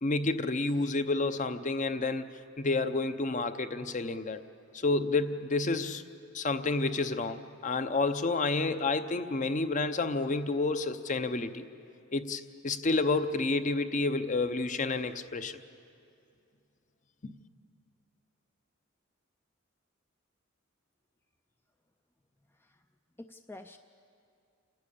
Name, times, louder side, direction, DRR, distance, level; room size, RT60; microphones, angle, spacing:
voice 1, 0.0-2.3 2.6-4.4 4.7-6.0 6.3-11.6 12.1-15.6 17.2-17.3, left 3 dB, 40° left, 10 dB, 0.7 m, -30 dB
voice 2, 22.5-22.9 23.2-23.8, left 2 dB, 10° left, 7 dB, 0.4 m, -48 dB
29.0 x 12.0 x 8.5 m, 2.6 s
head